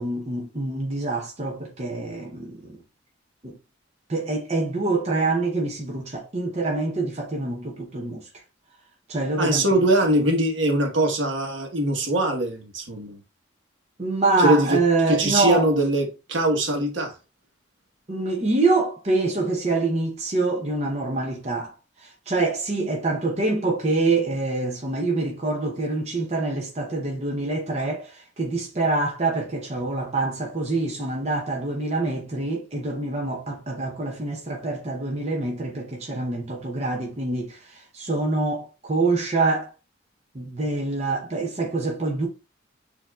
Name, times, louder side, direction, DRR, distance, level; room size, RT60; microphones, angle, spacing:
voice 1, 0.0-2.8 3.4-3.5 4.1-8.2 9.1-9.9 14.0-15.7 18.1-21.7 22.0-39.7 40.3-42.3, right 3 dB, 35° right, 0.7 m, -25 dB
voice 2, 9.4-13.2 14.4-14.8 15.1-17.1, right 1 dB, 70° right, 1.2 m, -22 dB
6.6 x 2.8 x 2.3 m
head